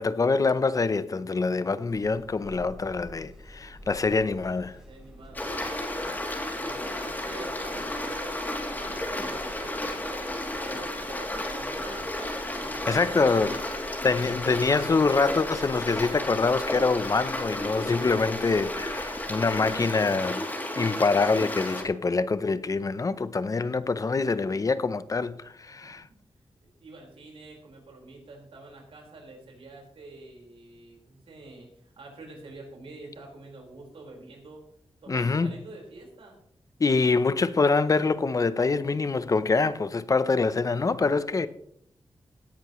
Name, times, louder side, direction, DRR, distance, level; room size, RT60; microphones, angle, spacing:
voice 1, 0.0-4.8 12.9-13.6 14.0-20.4 20.8-26.0 35.1-35.5 36.8-41.5, left 4 dB, 40° left, 0.7 m, -25 dB
sound 1, 1.9-19.8, left 1 dB, 5° right, 4.0 m, -48 dB
voice 2, 4.7-6.2 6.6-12.1 12.6-13.6 14.2-14.3 25.7-26.2 26.8-34.6 35.0-36.4 41.3-41.5, right 2 dB, 90° right, 4.7 m, -46 dB
Stream, 5.3-21.8, left 1 dB, 20° left, 2.9 m, -33 dB
17.5 x 10.5 x 3.1 m
wide cardioid pair, 115°, 9 cm